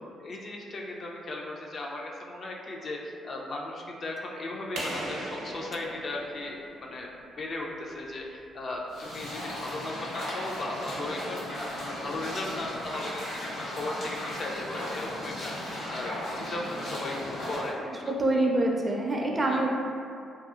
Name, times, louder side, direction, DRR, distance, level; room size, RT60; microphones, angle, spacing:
voice 1, 0.2-18.2 19.4-19.6, left 2 dB, 50° left, -1 dB, 0.3 m, -37 dB
sound 1, 4.8-7.4, right 1 dB, 85° right, 0.6 m, -38 dB
sound 2, 8.9-17.7, left 1 dB, 80° left, 1.2 m, -36 dB
voice 2, 17.8-19.7, right 2 dB, 25° right, -1 dB, 0.4 m, -26 dB
2.7 x 2.3 x 2.3 m, 2.4 s
cardioid pair, 90°, 0 cm